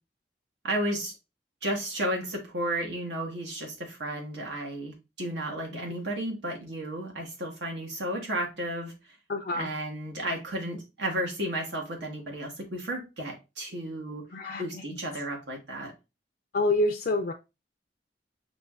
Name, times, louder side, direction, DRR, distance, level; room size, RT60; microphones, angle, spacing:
voice 1, 0.6-1.1 1.6-8.9 9.5-14.2 14.6-15.9, right 1 dB, 85° right, 1.4 m, -33 dB
voice 2, 9.3-9.7 14.3-14.8 16.5-17.3, left 2 dB, 55° left, 0.4 m, -27 dB
6.0 x 2.6 x 2.3 m
head